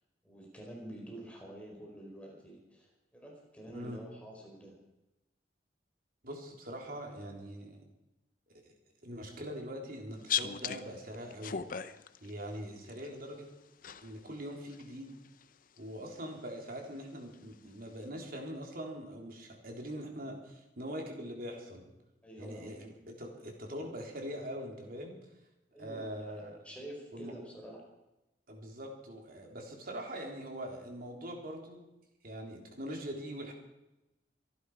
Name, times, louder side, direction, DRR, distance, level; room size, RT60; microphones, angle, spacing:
voice 1, 0.2-4.8 22.2-22.7 25.7-27.8, right 1 dB, 5° left, -2 dB, 4.5 m, -48 dB
voice 2, 6.2-7.8 8.6-8.7 9.0-11.6 12.2-13.5 14.0-15.1 15.8-21.9 22.4-22.9 23.2-25.1 25.8-26.6 27.1-27.3 28.5-31.8 32.2-33.5, equal, 55° right, 1 dB, 3.6 m, -42 dB
sound 1, 10.1-13.1 13.8-14.4 14.7-15.8 16.7-16.8 17.3-17.5, left 8 dB, 50° left, 0.7 m, -38 dB
24.0 x 11.0 x 4.9 m, 0.96 s
head